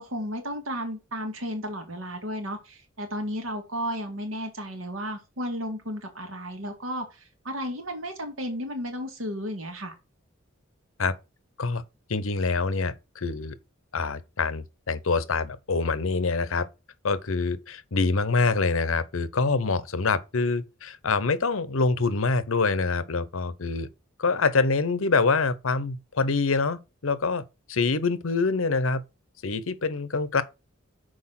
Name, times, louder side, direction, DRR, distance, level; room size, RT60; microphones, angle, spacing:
voice 1, 0.0-9.9, equal, 85° right, 2.2 m, -33 dB
voice 2, 12.1-13.5 13.9-16.6 17.0-23.9 24.2-27.4 27.7-29.0 29.4-30.4, left 4 dB, 85° left, 0.8 m, -25 dB
6.4 x 4.6 x 5.8 m
head